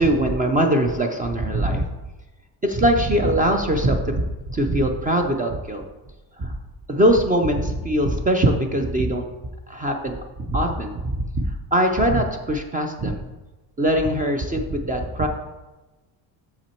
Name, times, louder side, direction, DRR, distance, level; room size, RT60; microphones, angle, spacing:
voice 1, 0.0-1.8 2.6-5.8 6.4-6.6 6.9-9.2 9.7-10.2 10.5-13.2 13.8-15.3, right 1 dB, 20° right, 4 dB, 0.3 m, -21 dB
6.8 x 5.8 x 4.3 m, 1.1 s
cardioid pair, 160°, 47 cm